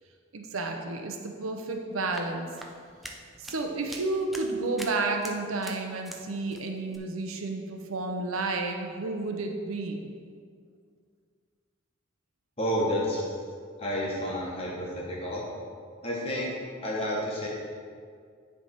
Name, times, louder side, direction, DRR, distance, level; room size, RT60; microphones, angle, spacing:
voice 1, 0.3-2.5 3.4-10.1, right 3 dB, 85° right, 3 dB, 0.7 m, -31 dB
sound 1, 1.9-6.2 6.5-7.0, equal, ahead, 0.3 m, -44 dB
voice 2, 12.6-13.2 13.8-15.4 16.0-17.5, equal, 30° left, -4 dB, 1.3 m, -30 dB
10.0 x 3.5 x 4.4 m, 2.2 s
head